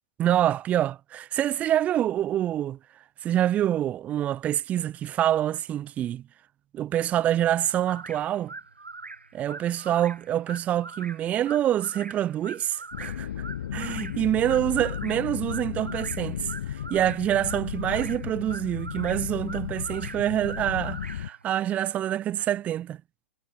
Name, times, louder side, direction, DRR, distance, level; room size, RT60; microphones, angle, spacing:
voice 1, 0.2-2.8 3.2-6.3 6.7-8.5 9.3-13.4 13.7-23.0, right 11 dB, 25° right, 0.9 m, -26 dB
sound 1, 7.9-21.5, right 3 dB, 80° right, 4.8 m, -43 dB
sound 2, 12.9-21.3, left 10 dB, 60° left, 1.1 m, -34 dB
figure-of-eight pair, 105°, 6 cm